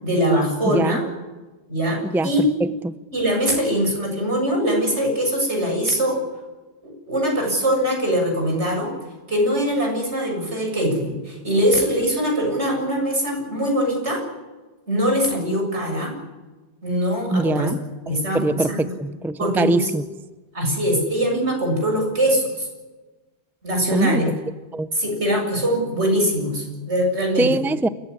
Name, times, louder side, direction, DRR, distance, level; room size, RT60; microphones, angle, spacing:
voice 1, 0.0-1.0 1.7-2.5 3.1-6.2 7.1-8.9 9.3-14.2 14.9-16.1 16.8-17.7 18.1-18.4 18.7-18.9 19.4-19.8 20.5-22.7 23.6-24.3 24.9-27.6, equal, 90° right, 7.7 m, -22 dB
voice 2, 0.7-1.0 2.0-2.5 2.8-3.0 17.3-17.8 18.1-20.0 23.9-24.3 24.7-24.9 27.4-27.9, right 2 dB, ahead, 0.6 m, -23 dB
28.0 x 15.5 x 9.7 m
omnidirectional pair, 1.1 m